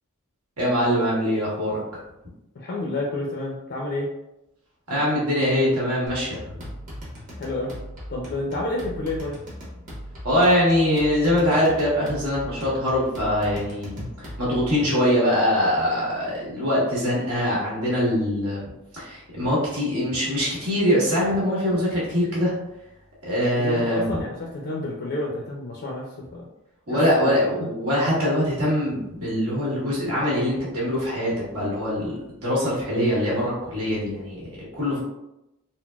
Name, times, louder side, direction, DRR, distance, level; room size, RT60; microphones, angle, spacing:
voice 1, 0.6-1.8 4.9-6.4 10.2-18.6 18.9-22.5 23.2-24.2 26.9-34.5 34.7-35.0, equal, 80° right, -6 dB, 1.4 m, -23 dB
voice 2, 2.6-4.1 7.4-7.7 8.1-9.4 23.5-26.1 26.3-26.4 26.9-27.3, left 2 dB, 50° left, -3 dB, 0.4 m, -29 dB
sound 1, 6.1-14.8, equal, 35° right, 1.0 m, -39 dB
3.8 x 2.0 x 2.3 m, 0.90 s
head